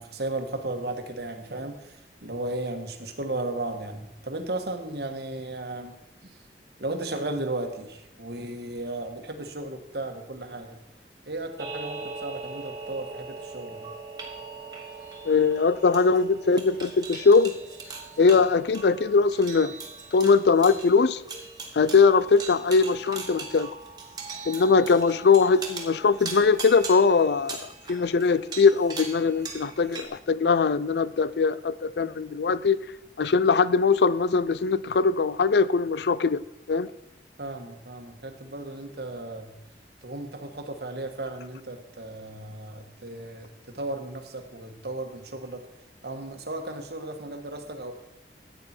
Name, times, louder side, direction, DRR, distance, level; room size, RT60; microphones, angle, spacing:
voice 1, 0.0-6.0 6.2-6.4 6.8-10.8 11.2-13.9 37.4-39.5 40.0-45.6 46.0-47.9, right 2 dB, 70° right, 1.5 m, -35 dB
sound 1, 11.6-30.0, right 4 dB, 25° right, 1.6 m, -40 dB
voice 2, 15.2-17.5 18.2-19.7 20.1-21.2 21.7-23.7 24.5-32.8 33.2-36.9, left 4 dB, 75° left, 0.5 m, -21 dB
14.0 x 8.8 x 4.4 m
head